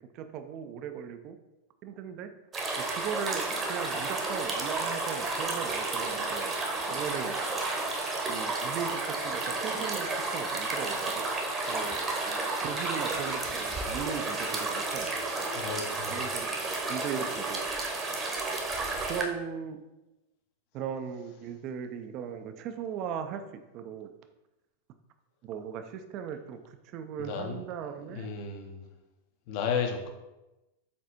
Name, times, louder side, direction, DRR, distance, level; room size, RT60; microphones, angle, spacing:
voice 1, 0.0-1.4 1.8-2.3 2.8-6.6 6.9-7.4 8.3-11.2 11.7-12.0 12.6-15.1 16.0-16.5 16.9-17.6 19.1-19.8 20.7-23.4 23.7-24.1 25.4-28.3, right 8 dB, 45° right, 8 dB, 0.4 m, -38 dB
sound 1, 2.5-19.2, right 3 dB, 25° right, 0.8 m, -32 dB
voice 2, 15.5-16.1 27.2-27.6 28.1-28.8 29.5-30.1, left 6 dB, 50° left, 4 dB, 0.7 m, -33 dB
4.2 x 4.1 x 2.9 m, 0.99 s
figure-of-eight pair, 95°, 0 cm